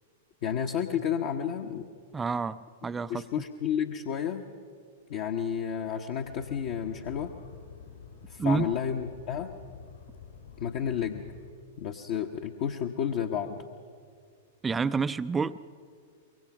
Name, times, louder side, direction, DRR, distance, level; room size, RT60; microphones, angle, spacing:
voice 1, 0.4-1.8 3.1-4.4 5.1-7.3 8.3-9.5 10.6-11.2 11.8-13.6, left 8 dB, 45° left, 4 dB, 1.1 m, -31 dB
voice 2, 2.1-3.2 8.4-8.7 14.6-15.6, right 5 dB, 15° right, 13 dB, 0.5 m, -28 dB
sound 1, 6.2-11.5, left 6 dB, 75° left, 5.7 m, -49 dB
24.5 x 23.0 x 6.0 m, 2.1 s
figure-of-eight pair, 100°, 0 cm